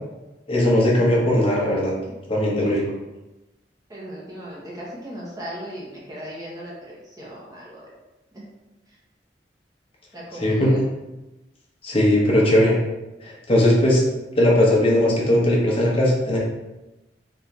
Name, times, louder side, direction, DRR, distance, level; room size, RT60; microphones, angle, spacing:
voice 1, 0.5-1.9 2.3-2.8 10.4-10.7 11.8-12.7 13.2-14.0 14.4-16.4, left 1 dB, 30° left, -4 dB, 0.9 m, -18 dB
voice 2, 3.9-7.9 8.3-8.5 8.9-9.0 10.1-10.8, equal, 20° right, -6 dB, 1.0 m, -37 dB
3.5 x 2.6 x 3.1 m, 1.0 s
head